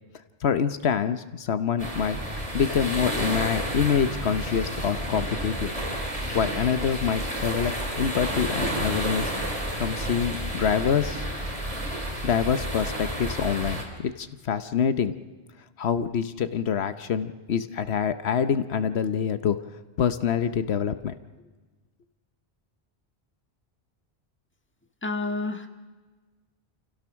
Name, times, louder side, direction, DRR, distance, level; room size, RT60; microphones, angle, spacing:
voice 1, 0.4-2.2 2.5-5.7 6.3-9.3 9.8-11.3 12.2-15.1 15.8-19.6 20.0-21.1, left 7 dB, 80° left, 11 dB, 1.1 m, -26 dB
sound 1, 1.8-13.8, right 1 dB, 35° right, 3.5 m, -30 dB
voice 2, 25.0-25.7, left 2 dB, 10° left, 5 dB, 1.5 m, -29 dB
27.5 x 16.5 x 6.3 m, 1.3 s
omnidirectional pair, 1.1 m